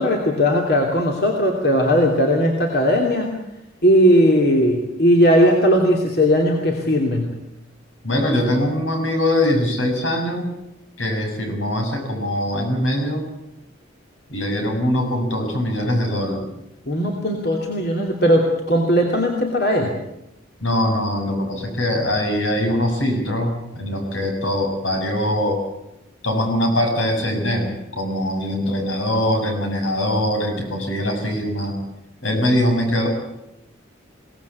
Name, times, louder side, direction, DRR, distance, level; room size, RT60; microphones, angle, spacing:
voice 1, 0.0-3.4 3.8-7.3 16.9-19.9, equal, 55° left, 1 dB, 2.9 m, -18 dB
voice 2, 8.0-10.5 11.0-13.2 14.3-16.5 20.6-25.6 26.2-31.8 32.2-33.1, left 1 dB, 80° left, 3 dB, 6.7 m, -22 dB
23.0 x 18.0 x 8.4 m, 0.87 s
head